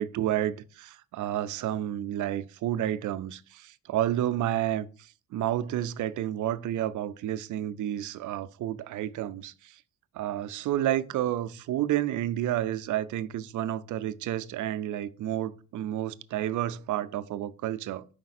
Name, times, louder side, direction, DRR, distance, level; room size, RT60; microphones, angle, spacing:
voice 1, 0.0-9.8 10.1-18.1, right 12 dB, 60° right, 0.5 m, -30 dB
5.1 x 4.8 x 4.1 m
cardioid pair, 145°, 34 cm